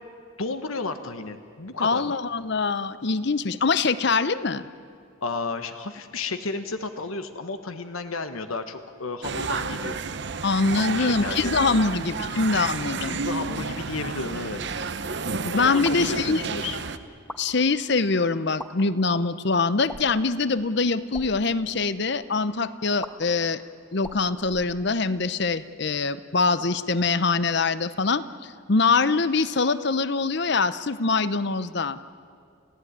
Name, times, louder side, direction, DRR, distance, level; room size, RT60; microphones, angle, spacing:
voice 1, 0.4-2.0 5.2-10.0 10.8-11.8 13.1-14.8 15.6-16.8, left 3 dB, 90° left, 9 dB, 1.3 m, -33 dB
voice 2, 1.8-4.6 10.4-13.2 15.4-16.5 17.4-23.6 23.9-28.2 28.7-32.0, left 4 dB, 55° left, 14 dB, 0.8 m, -24 dB
sound 1, 9.2-17.0, right 4 dB, 55° right, 0.9 m, -31 dB
sound 2, 15.8-16.1 17.1-17.4 18.5-18.7 19.9-20.2 21.0-21.3 23.0-23.1 24.0-25.2, left 1 dB, 5° left, 1.4 m, -40 dB
29.5 x 16.5 x 9.6 m, 2.3 s
head